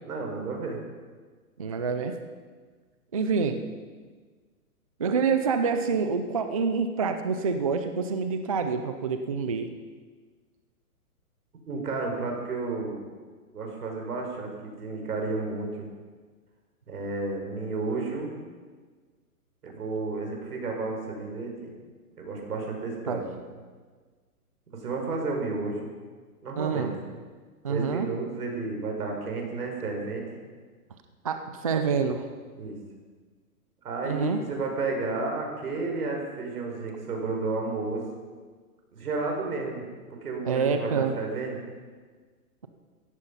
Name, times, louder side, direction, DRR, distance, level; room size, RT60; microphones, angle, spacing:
voice 1, 0.0-0.8 11.7-13.0 13.5-15.9 16.9-18.3 19.6-21.7 22.2-23.2 24.7-25.9 26.4-26.9 27.7-30.4 32.6-32.8 33.8-38.1 38.9-39.9 40.2-41.6, right 3 dB, 75° right, 1 dB, 5.7 m, -32 dB
voice 2, 1.6-2.1 3.1-3.6 5.0-9.7 23.1-23.2 26.6-26.9 27.6-28.1 31.2-32.3 34.0-34.4 40.5-41.1, right 5 dB, 25° right, 8 dB, 0.4 m, -27 dB
17.0 x 14.5 x 5.6 m, 1.5 s
hypercardioid pair, 155°, 46 cm